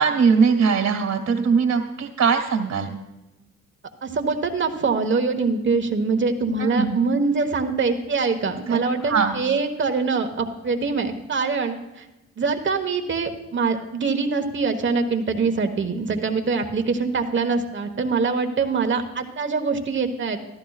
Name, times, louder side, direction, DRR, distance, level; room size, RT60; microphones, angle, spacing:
voice 1, 0.0-2.9 6.6-7.0 8.7-8.8 9.0-9.4, right 5 dB, 60° right, 3 dB, 2.1 m, -20 dB
voice 2, 4.0-12.0 12.4-20.4, right 4 dB, 40° right, 5 dB, 1.3 m, -24 dB
14.5 x 13.0 x 2.4 m, 1.0 s
cardioid pair, 90°, 30 cm